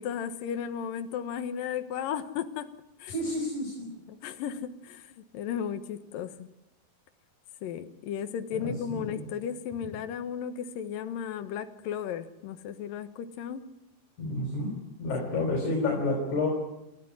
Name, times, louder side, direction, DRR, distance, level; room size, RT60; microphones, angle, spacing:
voice 1, 0.0-2.7 3.0-3.1 4.1-6.5 7.6-13.7 15.3-15.5, left 8 dB, 70° left, 9 dB, 3.0 m, -35 dB
voice 2, 3.1-3.9 9.1-9.2 14.2-14.7 15.0-16.5, left 2 dB, 55° left, 0 dB, 6.7 m, -29 dB
29.0 x 15.5 x 9.8 m, 0.92 s
omnidirectional pair, 4.2 m